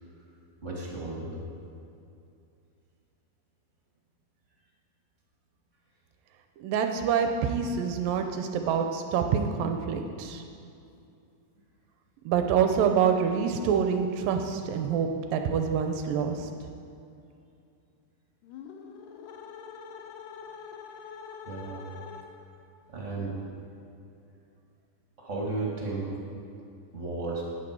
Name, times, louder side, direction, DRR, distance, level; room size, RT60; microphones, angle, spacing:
voice 1, 0.6-1.4 21.4-21.8 22.9-23.3 25.2-26.1 26.9-27.4, right 3 dB, 25° right, -3 dB, 1.6 m, -33 dB
voice 2, 6.6-10.4 12.3-16.5, right 7 dB, 80° right, 5 dB, 2.2 m, -26 dB
sound 1, 18.4-22.6, left 6 dB, 75° left, 2.0 m, -44 dB
13.5 x 8.9 x 4.7 m, 2.6 s
omnidirectional pair, 4.4 m